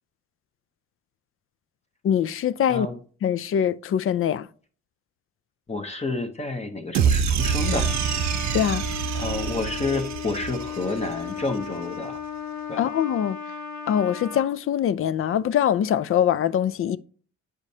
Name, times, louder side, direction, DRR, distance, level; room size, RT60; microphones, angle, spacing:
voice 1, 2.0-2.9 3.2-4.5 8.5-8.8 12.8-13.4 13.9-17.0, left 9 dB, 45° left, 0.4 m, -23 dB
voice 2, 5.7-7.9 9.1-12.2 12.7-12.9, left 3 dB, 20° left, 0.8 m, -29 dB
sound 1, 6.9-11.3, right 7 dB, 65° right, 0.7 m, -26 dB
Trumpet, 7.4-14.5, left 7 dB, 65° left, 0.9 m, -35 dB
8.2 x 5.0 x 2.7 m
cardioid pair, 90°, 30 cm